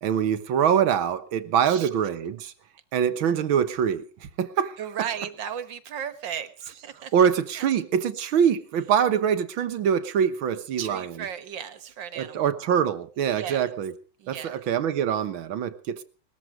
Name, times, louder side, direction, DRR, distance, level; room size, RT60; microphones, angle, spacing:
voice 1, 0.0-2.5 2.9-4.1 4.4-4.8 7.1-11.1 12.2-13.9 14.3-16.0, right 8 dB, 90° right, 11 dB, 2.0 m, -24 dB
voice 2, 4.8-7.3 7.6-7.7 10.8-12.5 13.2-13.7 14.2-14.6, right 8 dB, 70° right, 12 dB, 2.1 m, -35 dB
20.0 x 14.0 x 4.9 m, 0.38 s
omnidirectional pair, 2.2 m